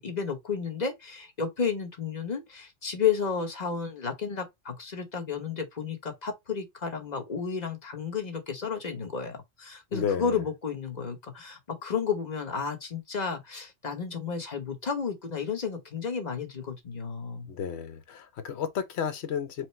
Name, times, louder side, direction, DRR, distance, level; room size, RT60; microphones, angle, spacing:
voice 1, 0.0-17.5, left 6 dB, 35° left, 1.1 m, -32 dB
voice 2, 9.9-10.3 17.5-19.7, left 7 dB, 65° left, 1.1 m, -32 dB
4.8 x 2.0 x 4.2 m
omnidirectional pair, 1.2 m